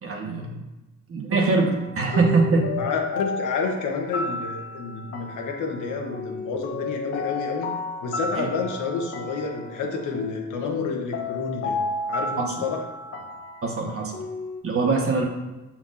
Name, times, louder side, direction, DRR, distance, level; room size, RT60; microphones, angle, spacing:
voice 1, 0.0-0.5 1.1-2.8 8.3-8.5 12.4-12.6 13.6-14.1 14.6-15.2, right 3 dB, 50° right, 1 dB, 1.3 m, -23 dB
sound 1, 1.4-14.6, left 2 dB, 50° left, 0.8 m, -33 dB
voice 2, 2.8-7.7 8.0-11.8 12.1-12.8, left 4 dB, 85° left, 2 dB, 1.1 m, -29 dB
6.3 x 5.8 x 2.6 m, 1.1 s
cardioid pair, 90°, 30 cm